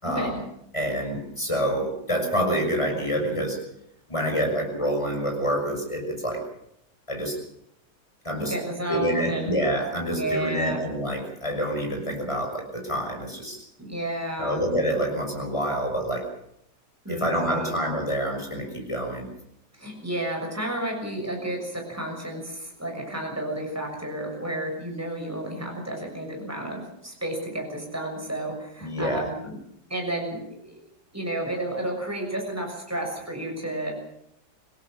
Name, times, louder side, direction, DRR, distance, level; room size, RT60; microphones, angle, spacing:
voice 1, 0.0-0.4 0.7-3.6 4.1-6.4 7.1-7.4 8.2-8.5 8.9-13.6 14.4-16.3 17.1-19.3 28.8-29.3, equal, 15° left, 2 dB, 6.3 m, -27 dB
voice 2, 8.4-9.6 10.1-10.8 13.8-14.6 17.0-17.8 19.7-29.6 29.9-30.8 31.1-33.9, right 1 dB, 10° right, 1 dB, 6.7 m, -32 dB
26.5 x 17.5 x 6.4 m, 0.77 s
omnidirectional pair, 1.7 m